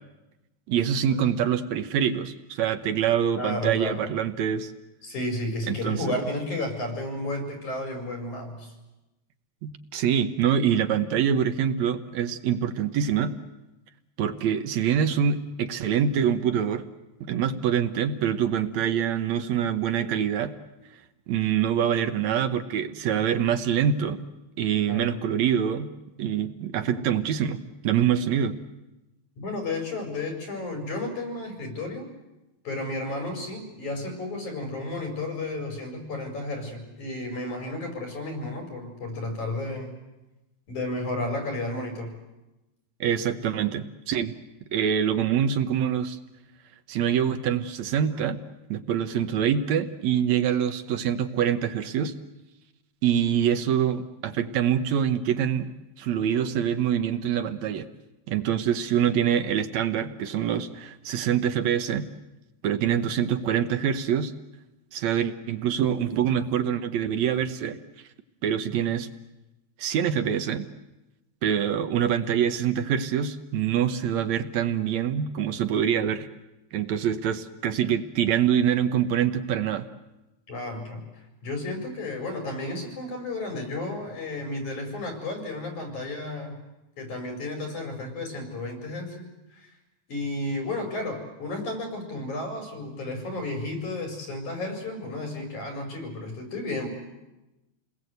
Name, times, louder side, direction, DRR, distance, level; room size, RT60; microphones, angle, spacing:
voice 1, 0.7-4.7 5.7-6.2 9.6-13.3 14.2-16.8 17.3-20.5 21.3-24.2 24.6-25.9 26.2-28.6 43.0-44.4 44.7-46.2 46.9-48.4 48.7-52.1 53.0-55.7 56.0-57.9 58.3-62.1 62.6-64.3 64.9-67.8 68.4-69.1 69.8-70.7 71.4-76.3 76.7-79.9, right 8 dB, 70° right, 9 dB, 2.2 m, -25 dB
voice 2, 3.3-4.0 5.0-8.7 24.9-25.2 29.4-32.1 32.6-39.9 40.7-42.1 80.5-81.0 81.4-86.6 87.0-89.2 89.5-89.7 90.1-96.9, left 2 dB, 80° left, 3 dB, 6.6 m, -32 dB
28.5 x 20.0 x 8.1 m, 1.0 s
omnidirectional pair, 3.4 m